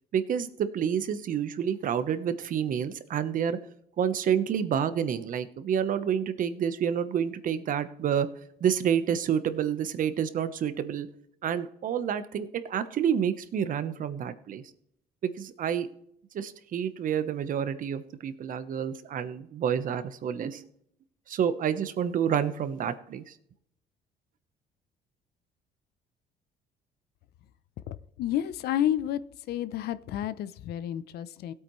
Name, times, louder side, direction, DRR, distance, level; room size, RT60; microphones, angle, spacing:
voice 1, 0.1-3.6 4.0-8.3 8.6-11.1 11.4-14.6 15.2-15.9 16.3-20.7 21.3-23.3, right 8 dB, 55° right, 1.0 m, -29 dB
voice 2, 27.9-29.2 29.5-31.5, left 11 dB, 70° left, 0.6 m, -30 dB
16.5 x 8.5 x 3.1 m
cardioid pair, 110°, 17 cm